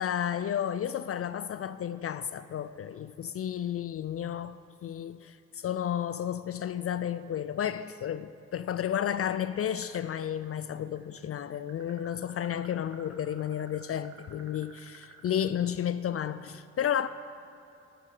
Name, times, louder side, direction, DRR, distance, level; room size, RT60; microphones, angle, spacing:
voice 1, 0.0-17.1, left 9 dB, 50° left, 0.4 m, -32 dB
sound 1, 9.8-10.5 10.7-15.3, right 3 dB, 60° right, 1.7 m, -52 dB
13.5 x 12.0 x 3.9 m
cardioid pair, 60°, 29 cm